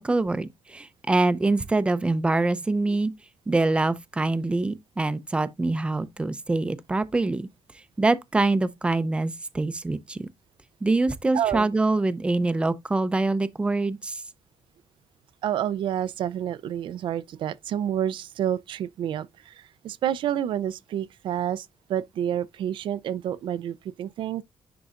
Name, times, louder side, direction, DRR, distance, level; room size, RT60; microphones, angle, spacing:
voice 1, 0.0-3.1 3.5-7.5 8.0-10.3 10.8-14.2, right 2 dB, 10° right, 0.5 m, -24 dB
voice 2, 11.3-11.7 12.4-12.5 15.4-19.5 19.8-24.4, right 10 dB, 65° right, 0.4 m, -29 dB
10.5 x 3.9 x 2.4 m
cardioid pair, 175°, 9 cm